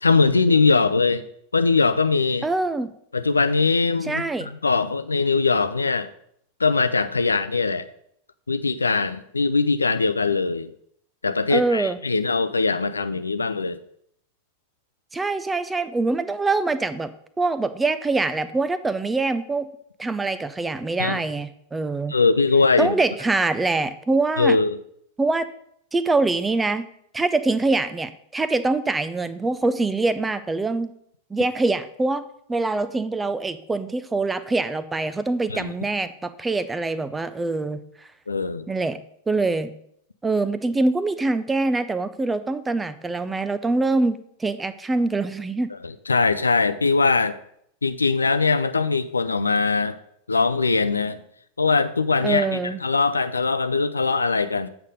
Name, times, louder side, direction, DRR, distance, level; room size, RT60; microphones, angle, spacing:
voice 1, 0.0-1.2 1.5-2.5 3.1-6.1 6.6-7.9 8.5-10.7 11.2-13.8 21.0-21.2 22.1-23.0 24.4-24.8 35.5-35.7 38.3-38.7 45.8-47.4 47.8-50.0 50.3-51.2 51.6-54.7, left 4 dB, 80° left, 12 dB, 0.4 m, -21 dB
voice 2, 2.4-2.9 4.1-4.5 11.5-12.0 15.1-17.1 17.4-19.7 20.0-22.1 22.8-24.6 25.2-25.5 25.9-26.8 27.1-30.9 31.3-32.2 32.5-37.8 38.7-39.0 39.3-39.7 40.2-45.7 52.2-52.8, right 3 dB, 10° right, 13 dB, 0.5 m, -24 dB
8.1 x 5.0 x 5.3 m, 0.69 s
figure-of-eight pair, 90°, 0 cm